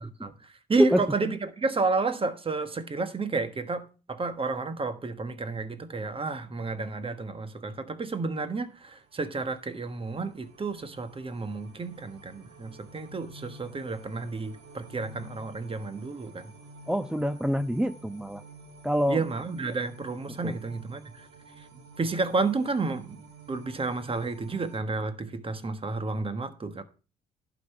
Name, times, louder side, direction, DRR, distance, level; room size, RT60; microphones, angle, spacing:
voice 1, 0.0-16.5 19.1-21.3 21.6-21.7 22.0-23.2 23.5-26.8, right 3 dB, 30° right, 1.4 m, -31 dB
sound 1, 8.7-24.8, right 2 dB, 75° right, 1.5 m, -50 dB
voice 2, 16.9-18.4 18.8-19.2 20.4-20.6, equal, 5° right, 0.5 m, -26 dB
11.5 x 5.1 x 5.9 m
supercardioid pair, 65°, 18 cm